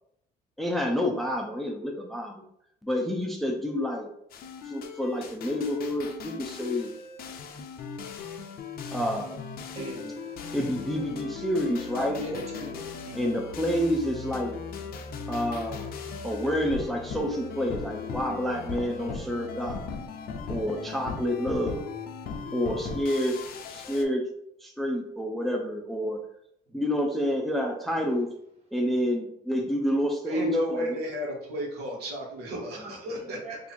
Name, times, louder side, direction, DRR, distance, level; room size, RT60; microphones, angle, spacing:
voice 1, 0.6-2.4 2.8-4.1 4.6-6.9 8.9-9.4 10.5-12.2 13.2-14.5 15.3-15.9 16.2-19.9 20.5-21.9 22.5-23.4 23.7-24.3 24.6-26.2 26.7-28.3 28.7-31.0, equal, ahead, 1 dB, 0.5 m, -28 dB
sound 1, 4.3-24.0, left 5 dB, 60° left, 0.6 m, -38 dB
voice 2, 9.7-11.1 11.9-13.2 26.7-26.8 28.0-28.1 28.9-29.0 32.7-33.6, right 1 dB, 40° right, -1 dB, 1.3 m, -40 dB
voice 3, 30.3-33.4, equal, 75° right, -1 dB, 1.1 m, -32 dB
2.7 x 2.6 x 4.2 m, 0.75 s
cardioid pair, 110°, 17 cm